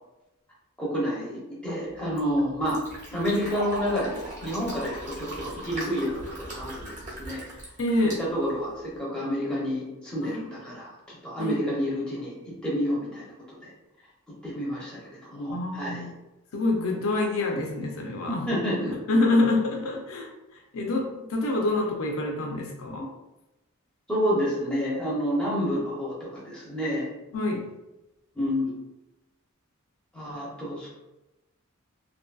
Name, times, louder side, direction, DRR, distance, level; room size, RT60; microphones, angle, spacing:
voice 1, 0.8-2.8 3.1-7.4 8.2-13.7 14.4-16.1 18.3-18.9 24.1-27.1 28.4-28.8 30.1-30.9, equal, 5° left, -6 dB, 0.6 m, -29 dB
Fill (with liquid), 1.9-9.0, right 1 dB, 35° right, 0.8 m, -40 dB
voice 2, 7.8-8.2 10.2-10.4 11.4-11.6 15.5-16.1 16.5-18.5 18.9-23.1 27.3-27.7, left 2 dB, 70° left, 1 dB, 0.5 m, -26 dB
2.6 x 2.6 x 2.2 m, 0.98 s
head